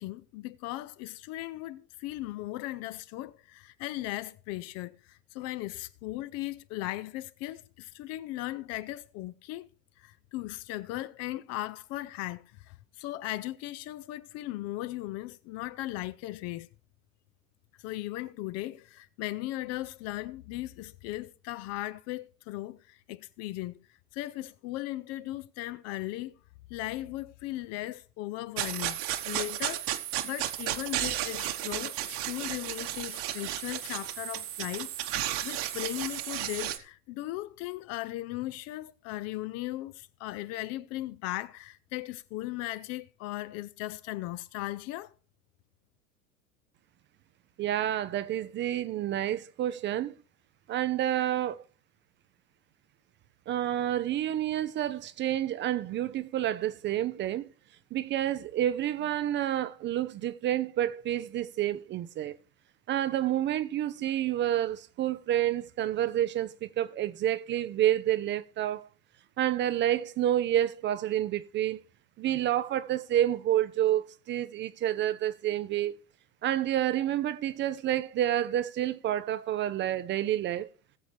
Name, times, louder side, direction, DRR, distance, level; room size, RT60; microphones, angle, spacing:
voice 1, 0.0-9.7 10.0-16.7 17.8-23.8 24.1-26.4 26.7-45.1, left 16 dB, 35° left, 0.5 m, -37 dB
sound 1, 28.6-36.8, right 13 dB, 50° right, 1.3 m, -33 dB
voice 2, 47.6-50.1 50.7-51.6 53.5-57.5 57.9-62.4 62.9-68.9 69.4-71.8 72.2-76.0 76.4-80.7, right 12 dB, 25° right, 0.5 m, -29 dB
19.5 x 7.1 x 3.2 m
hypercardioid pair, 90°, 44 cm